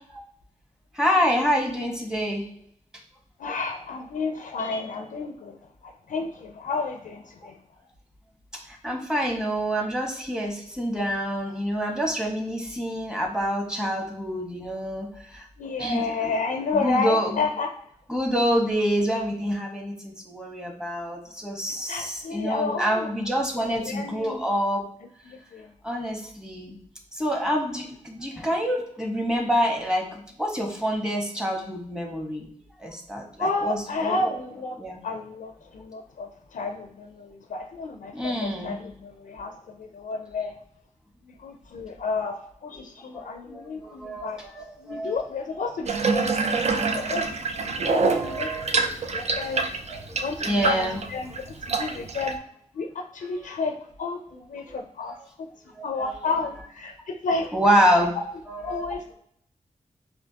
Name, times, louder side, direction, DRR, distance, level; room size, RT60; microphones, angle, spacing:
voice 1, 0.9-2.5 8.7-15.4 15.8-16.3 16.7-17.4 18.1-24.8 25.8-26.8 27.2-32.5 32.8-34.4 34.8-35.0 38.1-38.8 43.1-45.1 46.4-47.1 48.1-48.6 49.9-50.0 50.4-51.0 51.7-51.9 53.4-53.5 54.7-54.8 55.7-55.9 57.5-58.1 58.5-58.8, equal, 5° right, 1 dB, 1.2 m, -27 dB
voice 2, 3.4-5.6 5.8-7.6 15.6-17.7 21.7-23.1 23.6-24.4 25.2-25.7 33.4-34.8 35.0-40.6 41.2-44.4 44.8-49.7 50.1-50.8 51.1-51.4 51.7-52.4 52.7-55.5 55.8-57.5 58.6-59.1, left 4 dB, 85° left, 5 dB, 0.4 m, -31 dB
Water tap faucet / Bathtub (filling or washing), 45.9-52.3, right 4 dB, 55° right, 0.5 m, -26 dB
4.2 x 2.6 x 2.8 m, 0.68 s
cardioid pair, 55°, 13 cm